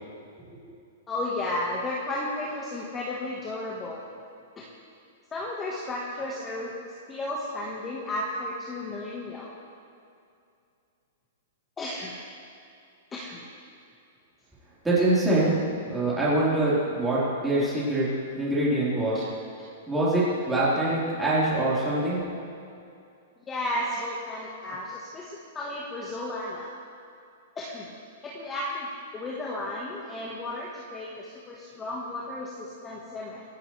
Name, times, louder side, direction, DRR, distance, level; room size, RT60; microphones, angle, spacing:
voice 1, 1.1-4.0 4.6-4.7 5.3-6.7 7.1-9.5 11.8-12.1 13.1-13.4 19.1-19.3 23.5-26.7 27.5-27.9 28.2-33.4, left 1 dB, 15° left, -5 dB, 1.7 m, -33 dB
voice 2, 14.8-15.5 15.9-18.1 18.3-19.2 19.9-22.2, right 1 dB, 5° right, -9 dB, 4.5 m, -24 dB
26.0 x 11.5 x 3.5 m, 2.5 s
hypercardioid pair, 165°, 0 cm